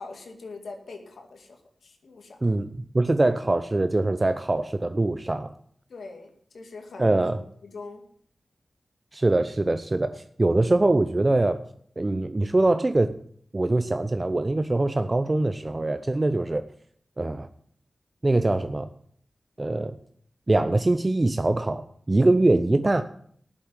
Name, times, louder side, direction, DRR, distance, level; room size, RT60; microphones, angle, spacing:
voice 1, 0.0-2.6 5.9-7.2 7.6-8.0, left 3 dB, 85° left, 4 dB, 2.1 m, -42 dB
voice 2, 2.4-5.5 7.0-7.4 9.1-11.6 12.0-13.1 13.5-16.6 17.2-17.5 18.2-18.9 19.6-20.0 20.5-23.0, right 2 dB, 35° right, 10 dB, 0.7 m, -23 dB
9.7 x 7.4 x 9.0 m, 0.62 s
cardioid pair, 50°, 0 cm